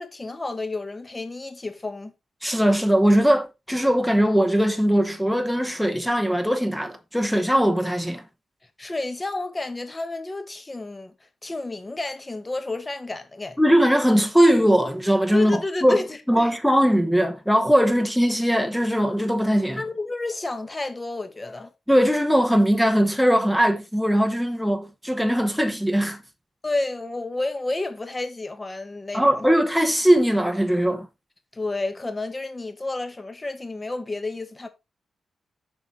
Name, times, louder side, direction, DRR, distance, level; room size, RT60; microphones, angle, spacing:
voice 1, 0.0-2.1 8.8-11.1 11.4-13.6 15.3-16.5 19.8-21.7 26.6-29.5 31.5-34.7, left 2 dB, 20° left, 1.2 m, -30 dB
voice 2, 2.4-8.2 13.6-16.0 16.3-19.8 21.9-26.2 29.1-31.1, equal, ahead, 0.9 m, -20 dB
6.9 x 5.6 x 4.5 m
wide cardioid pair, 145°, 0 cm